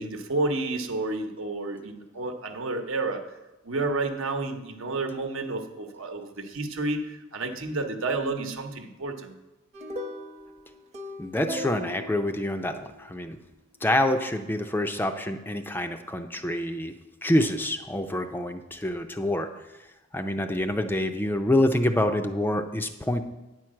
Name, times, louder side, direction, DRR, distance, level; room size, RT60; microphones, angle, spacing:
voice 1, 0.0-3.2 3.6-9.3, right 2 dB, 75° right, 5 dB, 1.0 m, -30 dB
sound 1, 9.7-13.1, left 1 dB, 35° right, 0.9 m, -38 dB
voice 2, 11.2-13.4 13.8-16.9 17.2-19.5 20.1-23.2, left 1 dB, 10° left, 7 dB, 0.4 m, -26 dB
9.6 x 4.6 x 7.5 m, 1.0 s
head